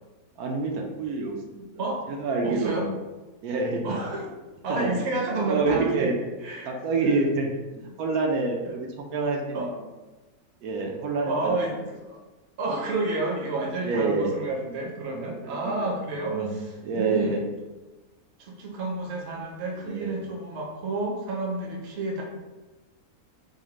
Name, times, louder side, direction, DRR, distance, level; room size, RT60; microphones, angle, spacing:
voice 1, 0.4-1.7 2.1-2.9 3.4-4.0 4.7-4.9 5.4-6.2 6.6-9.7 10.6-11.6 13.8-14.3 15.2-16.0 16.2-16.5 16.8-17.4 19.8-20.2, right 3 dB, 80° right, 1 dB, 1.1 m, -27 dB
voice 2, 2.4-2.9 3.8-4.3 4.6-6.1 6.4-6.7 7.0-7.2 9.5-9.7 11.2-11.8 12.0-12.2 12.6-16.4 16.9-17.4 18.4-22.2, right 2 dB, 55° right, -1 dB, 0.8 m, -30 dB
4.8 x 2.1 x 3.0 m, 1.2 s
omnidirectional pair, 1.6 m